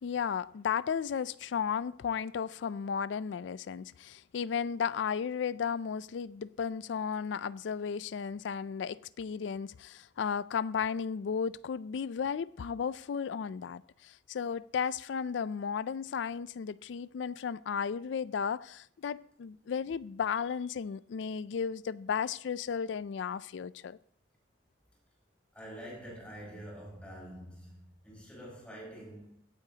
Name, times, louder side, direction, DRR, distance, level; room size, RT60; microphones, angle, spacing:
voice 1, 0.0-24.0, left 6 dB, 80° left, 0.4 m, -34 dB
voice 2, 25.5-29.4, equal, 5° left, 5.4 m, -46 dB
16.5 x 8.9 x 2.8 m
head